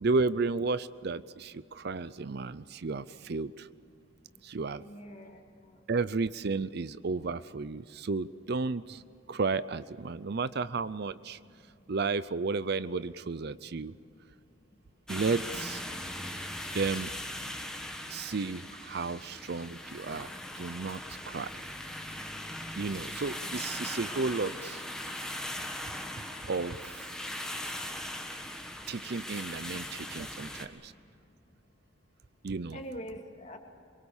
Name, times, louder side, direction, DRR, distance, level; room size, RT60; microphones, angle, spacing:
voice 1, 0.0-3.7 4.4-4.8 5.9-9.0 9.3-11.4 11.9-13.9 15.1-15.8 16.7-17.1 18.1-21.5 22.8-24.8 26.4-27.1 28.9-30.9 32.4-32.8, right 4 dB, 55° right, 16 dB, 0.5 m, -33 dB
voice 2, 4.8-5.8 32.7-33.6, equal, 35° left, 2 dB, 2.7 m, -44 dB
sound 1, 15.1-30.7, left 1 dB, 5° left, 1.6 m, -39 dB
25.0 x 23.0 x 7.2 m, 2.6 s
head